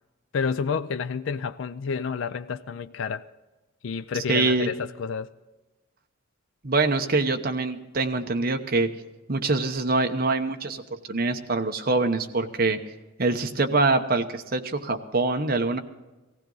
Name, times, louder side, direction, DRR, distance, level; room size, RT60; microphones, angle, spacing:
voice 1, 0.3-3.3 3.8-5.3, left 6 dB, 70° left, 0.4 m, -29 dB
voice 2, 4.3-4.7 6.6-8.9 9.3-12.8 13.2-15.8, right 3 dB, 50° right, 1.0 m, -24 dB
18.0 x 15.5 x 4.0 m
head